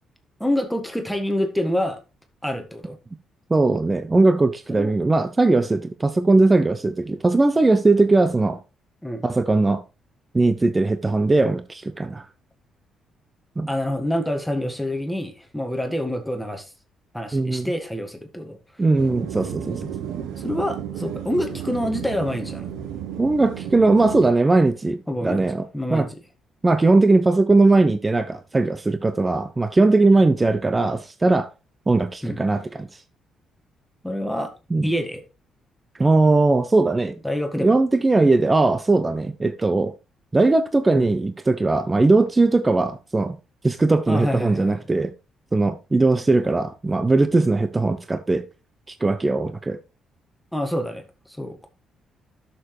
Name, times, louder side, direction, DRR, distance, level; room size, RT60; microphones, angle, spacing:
voice 1, 0.4-2.0 2.4-3.0 4.7-4.9 5.5-5.7 9.0-9.2 13.7-16.7 17.1-18.6 20.4-22.7 25.1-26.2 32.2-32.4 34.0-34.5 34.8-35.2 37.2-37.7 40.9-41.1 44.1-44.8 50.5-51.7, equal, 5° left, 1.6 m, -27 dB
voice 2, 3.5-8.6 9.2-9.8 10.3-12.2 13.6-13.7 17.3-17.7 18.8-19.9 23.2-25.6 25.9-26.1 26.6-31.5 31.9-32.9 34.7-34.9 36.0-37.1 37.6-39.9 40.3-43.4 43.6-45.1 45.5-48.4 48.9-49.8, right 3 dB, 20° right, 0.7 m, -19 dB
sound 1, 19.0-24.3, right 9 dB, 85° right, 0.9 m, -33 dB
11.5 x 6.8 x 3.2 m
cardioid pair, 90°, 0 cm